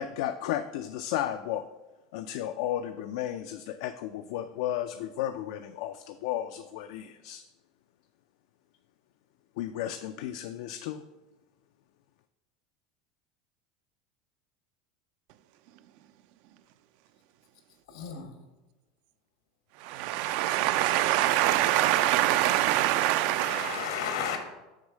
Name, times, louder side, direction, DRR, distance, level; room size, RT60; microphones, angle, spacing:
voice 1, 0.0-1.7 2.1-7.4 9.6-11.0, left 11 dB, 70° left, 0.3 m, -33 dB
voice 2, 17.9-18.3 23.3-24.4, left 7 dB, 85° left, 1.3 m, -33 dB
voice 3, 19.8-24.0, right 14 dB, 60° right, 0.4 m, -25 dB
6.4 x 3.6 x 6.2 m
supercardioid pair, 145°, 3 cm